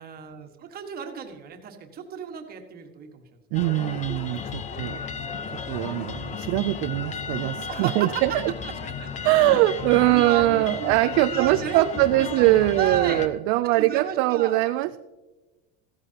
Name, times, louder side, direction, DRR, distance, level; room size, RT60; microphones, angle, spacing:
voice 1, 0.0-3.4 7.7-8.4 8.6-9.1 9.5-11.0 11.3-12.5 12.8-13.2 13.7-14.6, right 8 dB, 30° right, 5 dB, 1.5 m, -34 dB
sound 1, 3.5-13.3, left 6 dB, 25° left, 0.8 m, -34 dB
voice 2, 3.5-5.0 5.7-8.5 9.2-15.0, right 17 dB, 55° right, 11 dB, 0.4 m, -22 dB
15.0 x 13.5 x 2.8 m, 1.2 s
supercardioid pair, 150°, 30 cm